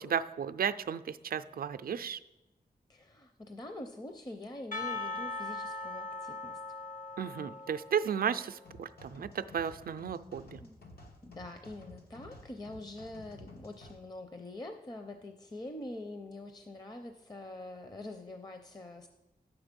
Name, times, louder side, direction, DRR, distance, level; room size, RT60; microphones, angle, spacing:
voice 1, 0.0-2.2 7.2-10.6, right 8 dB, 70° right, 11 dB, 0.4 m, -34 dB
voice 2, 2.9-6.6 9.9-10.0 10.6-10.8 11.2-19.1, left 1 dB, 25° left, 6 dB, 0.6 m, -45 dB
Percussion, 4.7-8.6, left 3 dB, 55° left, 1.2 m, -40 dB
sound 1, 8.6-14.0, left 1 dB, 80° left, 1.3 m, -53 dB
9.6 x 7.2 x 5.2 m, 0.99 s
wide cardioid pair, 90°, 16 cm